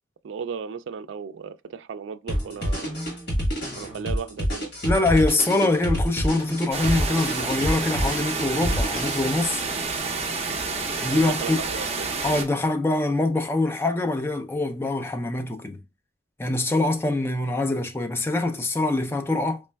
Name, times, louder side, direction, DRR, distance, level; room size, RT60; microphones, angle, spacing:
voice 1, 0.2-2.9 3.8-4.7 11.1-12.1, right 6 dB, 70° right, 0.3 m, -35 dB
sound 1, 2.3-9.6, equal, 60° left, 1.9 m, -27 dB
voice 2, 4.8-9.7 11.0-11.6 12.2-15.8 16.4-19.6, left 2 dB, 10° left, 0.4 m, -24 dB
sound 2, 6.7-12.4, right 4 dB, 35° right, 0.7 m, -29 dB
4.1 x 3.2 x 2.2 m
head